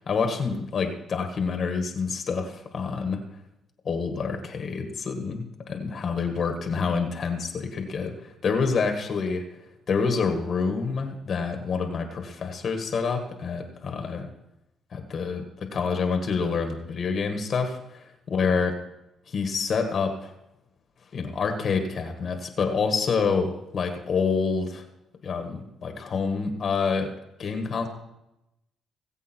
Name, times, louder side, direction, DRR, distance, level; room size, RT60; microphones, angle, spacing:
voice 1, 0.0-3.2 3.9-9.4 9.9-14.3 14.9-18.7 19.3-20.3 21.1-24.8 25.2-27.1 27.4-27.9, left 5 dB, 50° left, 5 dB, 1.8 m, -27 dB
19.5 x 8.1 x 4.6 m, 0.89 s
cardioid pair, 90°, 0 cm